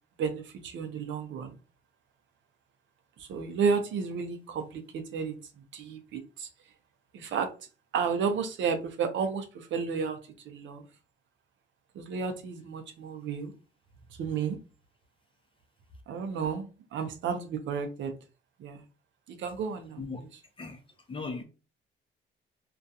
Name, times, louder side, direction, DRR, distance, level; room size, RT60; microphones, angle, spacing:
voice 1, 0.2-1.6 3.2-6.5 7.1-7.5 7.9-10.8 11.9-13.5 14.2-14.6 16.1-18.1 18.6-18.8 19.3-20.3, right 6 dB, 70° right, 0.6 m, -32 dB
voice 2, 21.1-21.4, left 4 dB, 25° left, 0.6 m, -37 dB
2.3 x 2.3 x 2.6 m
cardioid pair, 90°, 20 cm